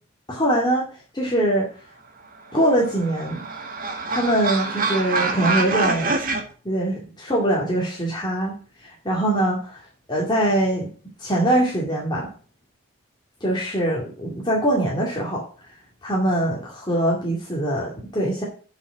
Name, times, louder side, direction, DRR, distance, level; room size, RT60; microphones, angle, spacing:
voice 1, 0.3-0.9 1.1-1.7 2.5-3.4 4.1-6.1 6.6-8.6 8.8-9.8 10.1-10.9 11.2-12.3 13.4-15.4 16.0-18.4, right 1 dB, 20° left, -4 dB, 2.2 m, -23 dB
sound 1, 2.5-6.4, right 3 dB, 40° right, 1.5 m, -25 dB
8.1 x 6.1 x 7.7 m, 0.40 s
head